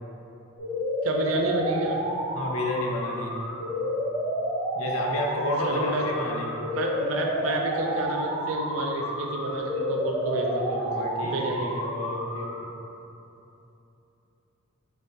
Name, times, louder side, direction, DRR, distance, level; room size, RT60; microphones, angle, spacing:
sound 1, 0.6-12.6, equal, 30° left, 1.3 m, -30 dB
voice 1, 1.0-2.0 5.6-6.0 6.7-10.5 11.2-11.8, right 2 dB, 70° right, 0 dB, 0.5 m, -29 dB
voice 2, 2.3-3.3 4.8-6.5 10.4-12.5, left 2 dB, 80° left, 0 dB, 0.5 m, -31 dB
4.0 x 3.5 x 2.6 m, 2.9 s
head